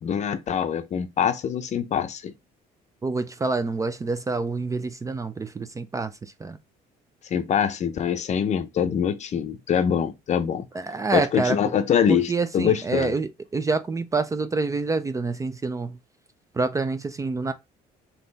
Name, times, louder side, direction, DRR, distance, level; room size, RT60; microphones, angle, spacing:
voice 1, 0.0-2.3 7.3-10.7 11.1-13.1, left 8 dB, 45° left, 0.6 m, -24 dB
voice 2, 3.0-6.6 10.7-11.7 12.1-16.0 16.5-17.5, right 3 dB, 20° right, 0.4 m, -27 dB
3.8 x 2.9 x 3.9 m
cardioid pair, 110°, 17 cm